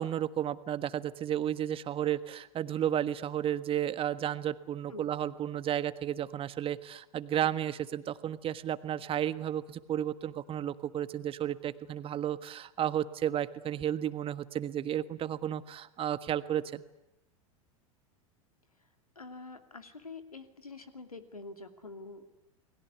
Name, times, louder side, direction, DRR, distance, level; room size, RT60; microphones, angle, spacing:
voice 1, 0.0-16.8, right 10 dB, 30° right, 13 dB, 1.5 m, -33 dB
voice 2, 19.2-22.2, left 3 dB, 90° left, 8 dB, 2.7 m, -46 dB
29.5 x 21.0 x 9.6 m, 0.85 s
figure-of-eight pair, 90°, 18 cm